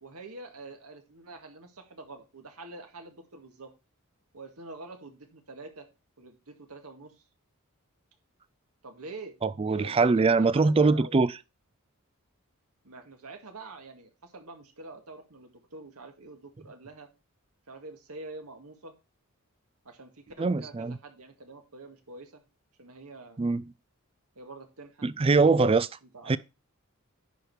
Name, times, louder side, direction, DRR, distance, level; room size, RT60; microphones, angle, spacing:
voice 1, 0.0-3.7 4.3-5.9 6.2-7.2 8.8-9.3 9.7-11.2 12.8-17.1 17.7-18.9 19.8-22.4 22.8-23.5 24.4-25.1 26.1-26.4, right 3 dB, 85° right, 1.9 m, -46 dB
voice 2, 9.4-11.3 20.4-21.0 23.4-23.6 25.0-25.9 26.3-26.4, right 4 dB, 25° right, 0.4 m, -23 dB
10.5 x 4.9 x 4.7 m
head